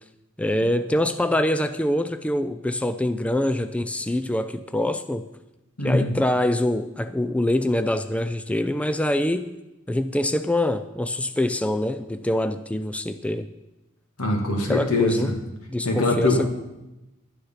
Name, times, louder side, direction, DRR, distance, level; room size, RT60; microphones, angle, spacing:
voice 1, 0.4-5.3 5.8-9.5 9.9-13.5 14.7-15.3 15.7-16.5, left 1 dB, 5° left, 10 dB, 0.4 m, -24 dB
voice 2, 5.8-6.1 14.2-15.3 15.8-16.5, left 2 dB, 85° left, 1 dB, 2.4 m, -22 dB
11.5 x 9.6 x 5.7 m, 0.97 s
head